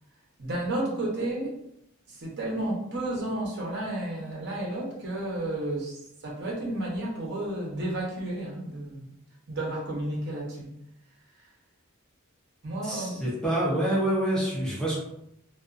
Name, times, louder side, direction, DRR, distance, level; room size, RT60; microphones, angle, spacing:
voice 1, 0.4-1.5 2.1-9.1 9.5-10.7 11.4-11.5 12.6-13.2, right 1 dB, 50° right, -3 dB, 0.8 m, -32 dB
voice 2, 12.8-15.0, right 1 dB, 5° left, -6 dB, 0.5 m, -27 dB
2.4 x 2.3 x 2.4 m, 0.78 s
head